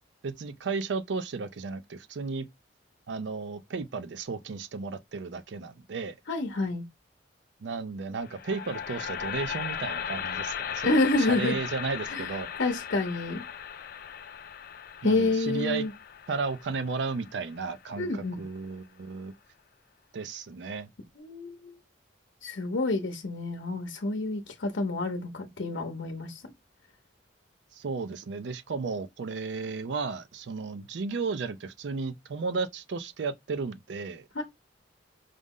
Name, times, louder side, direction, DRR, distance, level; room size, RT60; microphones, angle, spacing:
voice 1, 0.2-2.5 3.1-6.2 7.6-12.6 15.0-15.8 16.3-19.3 20.1-20.9 27.7-34.3, right 4 dB, 65° right, 0.4 m, -34 dB
voice 2, 6.3-6.8 10.8-11.6 12.1-12.3 12.6-13.4 15.0-15.9 18.0-18.4 21.2-21.7 22.4-26.5 34.3-34.4, left 2 dB, 80° left, 0.7 m, -28 dB
sound 1, 8.2-18.3, left 8 dB, 50° left, 0.3 m, -37 dB
5.1 x 2.0 x 3.6 m
head